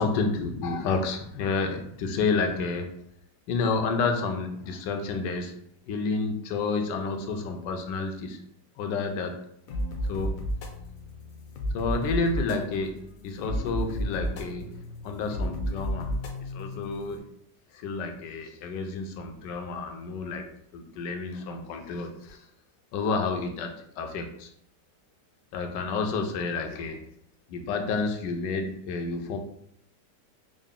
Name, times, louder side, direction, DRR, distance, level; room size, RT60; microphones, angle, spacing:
voice 1, 0.0-2.9 3.5-5.5 5.9-8.4 8.8-9.4 10.0-10.4 11.7-14.7 15.0-16.2 16.4-17.2 17.7-20.4 20.7-22.5 22.9-24.5 25.5-27.0 27.5-29.4, left 4 dB, 85° left, 4 dB, 1.3 m, -30 dB
sound 1, 9.7-17.2, equal, 70° left, 0.9 m, -33 dB
3.8 x 2.0 x 3.6 m, 0.70 s
omnidirectional pair, 1.9 m